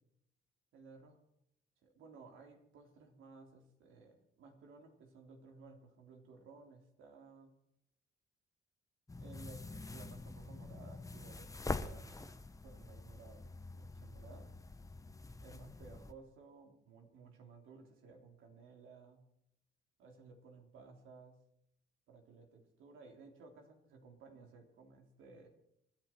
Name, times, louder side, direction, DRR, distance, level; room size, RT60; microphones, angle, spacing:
voice 1, 0.7-1.1 1.8-7.5 9.2-12.4 12.6-14.5 15.4-19.2 20.0-21.4 22.1-25.5, right 4 dB, 85° right, 3 dB, 3.3 m, -57 dB
sound 1, 9.1-16.1, left 3 dB, 15° left, 1.1 m, -45 dB
28.0 x 11.0 x 4.5 m, 0.77 s
cardioid pair, 90°, 20 cm